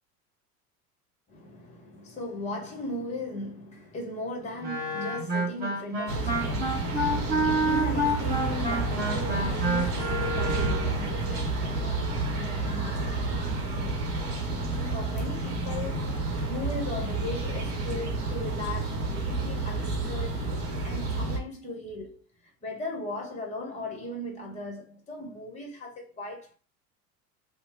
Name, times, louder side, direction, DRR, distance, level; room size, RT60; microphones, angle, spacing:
voice 1, 1.3-14.0 14.8-16.1 16.5-20.4 20.8-26.5, left 1 dB, 15° left, 0.9 m, -38 dB
Wind instrument woodwind instrument, 4.6-11.0, right 1 dB, 20° right, 1.1 m, -29 dB
sound 1, 6.1-21.4, right 2 dB, 60° right, 0.9 m, -30 dB
2.8 x 2.1 x 2.9 m
figure-of-eight pair, 80°, 49 cm